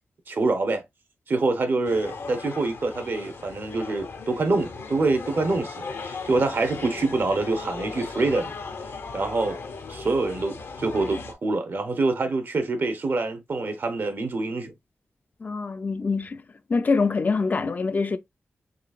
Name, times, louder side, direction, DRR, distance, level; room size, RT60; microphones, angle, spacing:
voice 1, 0.3-0.8 1.3-8.5 9.1-9.6 9.9-14.7, right 3 dB, 55° right, 0.7 m, -25 dB
sound 1, 1.8-11.3, left 4 dB, 75° left, 0.7 m, -37 dB
voice 2, 15.4-16.4 16.7-18.2, left 4 dB, 45° left, 0.4 m, -24 dB
3.8 x 3.2 x 2.3 m
wide cardioid pair, 95°, 4 cm